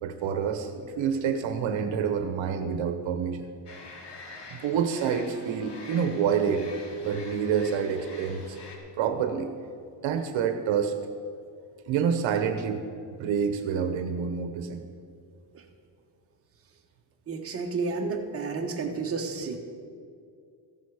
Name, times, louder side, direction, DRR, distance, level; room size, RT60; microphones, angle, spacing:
voice 1, 0.0-3.5 4.5-8.6 9.0-9.5 10.0-11.0 11.9-12.8 13.2-14.8, right 7 dB, 70° right, 7 dB, 1.0 m, -28 dB
sound 1, 3.7-8.8, left 3 dB, 60° left, 2.4 m, -45 dB
voice 2, 17.3-19.6, right 4 dB, 30° right, 1 dB, 1.3 m, -31 dB
14.5 x 11.0 x 4.9 m, 2.3 s
cardioid pair, 155°, 47 cm